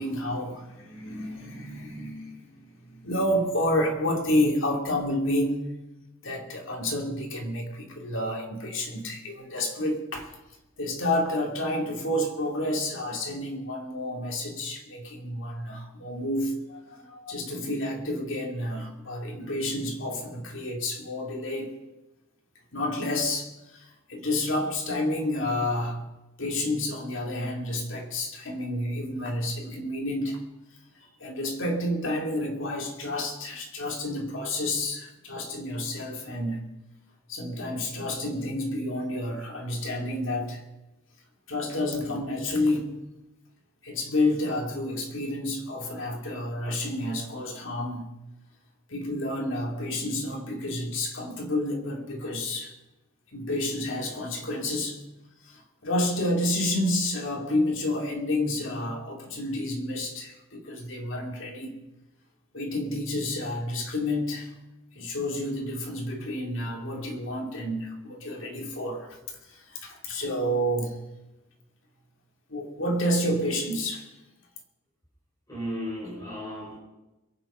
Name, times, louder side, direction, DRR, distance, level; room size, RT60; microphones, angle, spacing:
voice 1, 0.0-5.6 6.2-10.3 10.8-21.7 22.7-26.0 26.4-30.4 31.2-36.6 37.3-40.6 41.5-43.0 43.8-48.1 48.9-52.7 53.3-55.0 55.4-61.7 62.5-64.5 64.9-69.2 69.5-70.9 72.5-74.1, left 1 dB, 60° left, 1 dB, 2.6 m, -30 dB
voice 2, 75.5-76.8, equal, 15° left, -5 dB, 4.5 m, -34 dB
22.5 x 8.4 x 5.6 m, 1.0 s
head